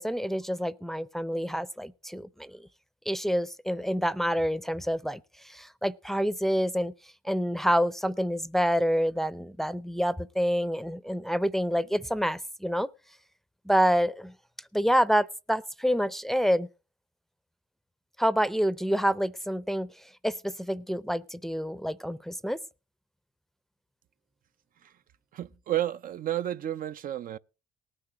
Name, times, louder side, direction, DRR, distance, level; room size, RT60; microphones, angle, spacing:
voice 1, 0.0-2.6 3.1-6.9 7.2-12.9 13.7-14.3 14.7-16.7 18.2-19.9 20.2-22.6, equal, ahead, 0.6 m, -27 dB
voice 2, 25.3-27.4, right 12 dB, 50° right, 0.5 m, -31 dB
19.0 x 9.8 x 3.0 m
supercardioid pair, 70°, 18 cm